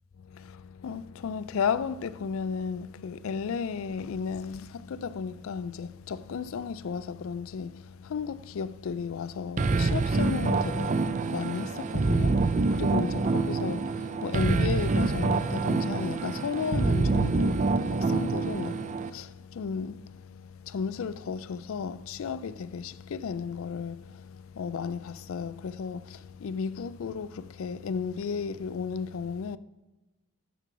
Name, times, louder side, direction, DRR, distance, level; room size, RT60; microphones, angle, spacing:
voice 1, 0.2-29.6, left 6 dB, 65° left, 0.3 m, -34 dB
sound 1, 9.6-19.1, right 3 dB, 35° right, 0.4 m, -26 dB
6.7 x 6.3 x 6.0 m
head